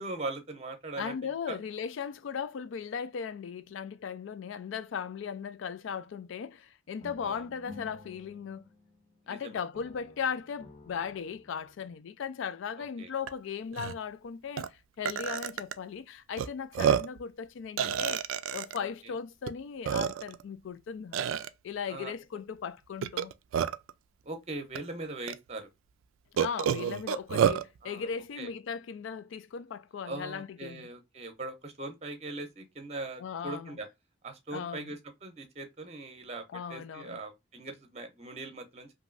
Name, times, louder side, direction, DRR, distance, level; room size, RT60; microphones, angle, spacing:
voice 1, 0.0-1.1 1.5-1.6 7.2-7.4 9.3-9.6 13.0-13.1 18.7-19.1 21.9-22.1 24.3-25.7 27.8-28.1 28.4-28.5 30.0-33.9 34.2-36.4 36.7-39.0, right 2 dB, 30° right, 0.6 m, -40 dB
voice 2, 1.0-8.7 9.3-18.3 18.5-21.2 21.6-23.3 26.4-30.9 33.2-33.8 34.5-34.9 36.5-37.2, left 6 dB, 75° left, 0.3 m, -37 dB
sound 1, 7.0-9.4 9.7-12.0, left 2 dB, 25° left, 0.6 m, -52 dB
Burping eructation, 13.3-13.4 13.7-13.9 14.6-14.7 15.0-15.7 16.4-16.5 16.7-17.2 17.8-18.8 19.5-19.6 19.8-20.4 21.1-21.5 23.0-23.9 24.7-24.8 25.3-25.4 26.4-27.6, right 8 dB, 90° right, 0.3 m, -28 dB
3.0 x 2.6 x 2.4 m
head